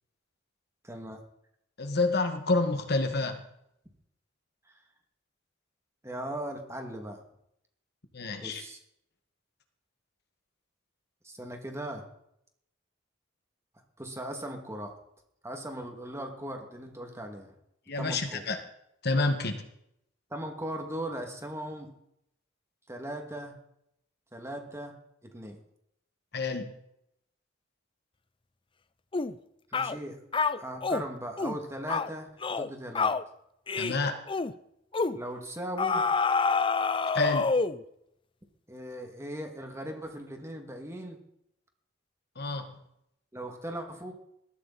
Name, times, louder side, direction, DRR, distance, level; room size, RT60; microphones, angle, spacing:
voice 1, 0.8-1.2 4.6-4.8 6.0-7.2 8.4-8.8 11.2-12.1 14.0-15.0 15.4-17.5 18.0-18.4 20.3-21.9 22.9-23.6 24.3-25.6 29.7-30.2 30.6-33.2 35.1-36.1 38.7-41.2 43.3-44.1, right 1 dB, 15° right, 3 dB, 2.6 m, -38 dB
voice 2, 1.8-3.4 8.1-8.6 17.9-18.6 19.0-19.6 26.3-26.7 33.8-34.2 37.1-37.5 42.4-42.7, left 3 dB, 55° left, 6 dB, 1.9 m, -28 dB
sound 1, 29.1-29.3 29.7-30.0 30.3-31.0 31.4-31.6 31.9-32.1 32.4-32.7 32.9-33.2 33.7-34.0 34.3-34.5 34.9-35.2 35.8-37.8, left 4 dB, 25° left, 0.6 m, -27 dB
20.5 x 14.0 x 4.3 m, 0.76 s
head